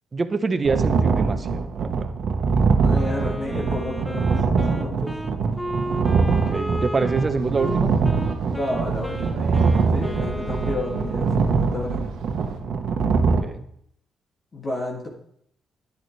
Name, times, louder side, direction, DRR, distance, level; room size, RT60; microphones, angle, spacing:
voice 1, 0.1-2.1 6.4-7.9 13.4-13.6, right 4 dB, 35° right, 9 dB, 0.9 m, -25 dB
sound 1, 0.6-13.4, right 4 dB, 65° right, 1.2 m, -23 dB
voice 2, 2.8-5.2 8.5-12.1 14.5-15.1, left 2 dB, 35° left, -1 dB, 2.3 m, -31 dB
Wind instrument woodwind instrument, 2.9-11.4, equal, 10° left, 0.8 m, -34 dB
sound 2, 7.3-12.6, right 4 dB, 85° right, 1.1 m, -38 dB
11.0 x 10.0 x 3.3 m, 0.70 s
cardioid pair, 90°, 0 cm